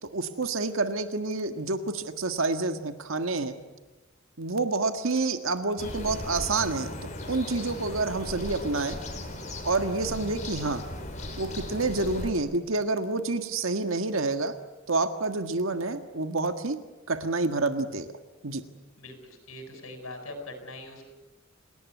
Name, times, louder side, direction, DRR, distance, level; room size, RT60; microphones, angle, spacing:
voice 1, 0.0-3.5 4.4-6.9 7.3-9.0 9.6-10.8 11.4-14.5 14.9-16.8 17.1-18.1 18.4-18.6, right 3 dB, 75° right, 8 dB, 1.7 m, -28 dB
sound 1, 5.8-12.3, left 1 dB, 35° left, 5.0 m, -37 dB
voice 2, 19.5-21.0, left 2 dB, 90° left, 4 dB, 7.1 m, -41 dB
29.5 x 19.0 x 9.7 m, 1.1 s
head